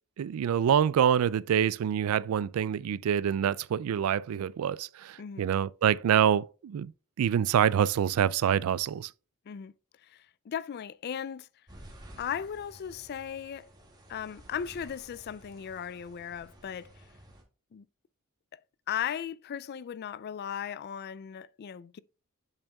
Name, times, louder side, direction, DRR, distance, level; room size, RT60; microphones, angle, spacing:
voice 1, 0.2-6.9 7.2-9.1, right 9 dB, 90° right, 0.3 m, -26 dB
voice 2, 5.2-5.5 9.5-9.7 10.0-11.5 12.2-13.7 14.1-17.1 17.7-17.9 18.5-18.6 18.9-22.0, left 8 dB, 50° left, 0.3 m, -37 dB
sound 1, 11.7-17.4, right 1 dB, 20° right, 1.9 m, -53 dB
8.1 x 7.0 x 2.3 m
head